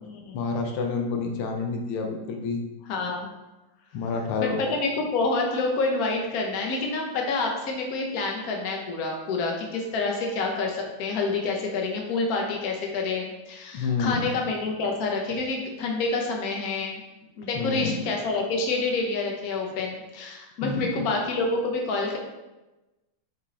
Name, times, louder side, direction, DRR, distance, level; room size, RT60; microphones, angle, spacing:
voice 1, 0.3-2.6 3.9-4.6 13.7-14.3 17.5-18.0 20.6-21.1, left 4 dB, 85° left, 2 dB, 1.6 m, -28 dB
voice 2, 2.9-3.3 4.4-17.0 17.4-22.2, left 3 dB, 50° left, 1 dB, 1.3 m, -28 dB
5.3 x 5.0 x 4.1 m, 1.1 s
omnidirectional pair, 2.3 m